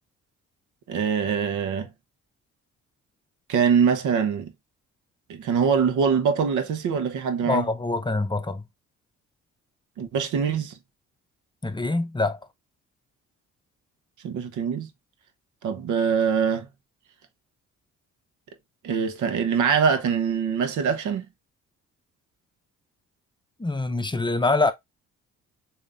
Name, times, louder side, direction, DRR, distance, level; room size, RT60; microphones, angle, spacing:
voice 1, 0.9-1.9 3.5-4.5 5.3-7.6 10.0-10.8 14.2-14.9 15.6-16.7 18.8-21.2, right 6 dB, 80° right, 1.0 m, -23 dB
voice 2, 7.4-8.7 11.6-12.4 23.6-24.7, left 3 dB, 15° left, 0.6 m, -25 dB
6.7 x 2.8 x 2.5 m
cardioid pair, 90°, 30 cm